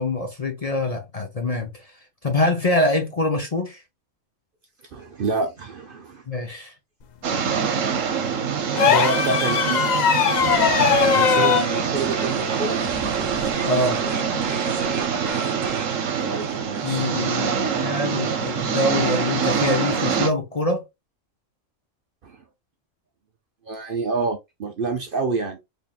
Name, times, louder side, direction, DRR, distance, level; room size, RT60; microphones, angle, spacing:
voice 1, 0.0-1.9 2.2-3.8 6.3-6.7 13.6-14.0 16.8-20.8, left 2 dB, 35° left, 0.7 m, -24 dB
voice 2, 4.9-6.2 8.8-9.9 11.1-12.8 16.2-17.1 22.2-22.4 23.7-25.6, right 4 dB, 55° right, 0.7 m, -27 dB
sound 1, 7.2-20.3, right 6 dB, 75° right, 1.2 m, -25 dB
sound 2, 8.7-11.7 13.4-13.5, left 7 dB, 75° left, 0.4 m, -19 dB
sound 3, 10.3-17.5, right 3 dB, 25° right, 0.4 m, -38 dB
4.0 x 3.5 x 2.2 m
omnidirectional pair, 1.3 m